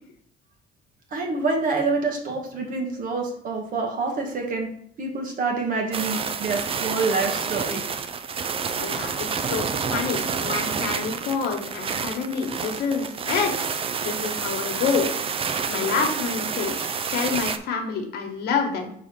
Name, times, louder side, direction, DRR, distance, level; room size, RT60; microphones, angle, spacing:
voice 1, 1.1-4.7 5.0-7.8, right 3 dB, 55° right, 1 dB, 1.7 m, -27 dB
sound 1, 5.9-17.6, right 6 dB, 35° right, 0.5 m, -29 dB
voice 2, 8.8-13.6 14.0-15.4 15.7-18.9, left 5 dB, 75° left, 3 dB, 1.4 m, -28 dB
4.8 x 3.8 x 5.4 m, 0.65 s
cardioid pair, 110°, 17 cm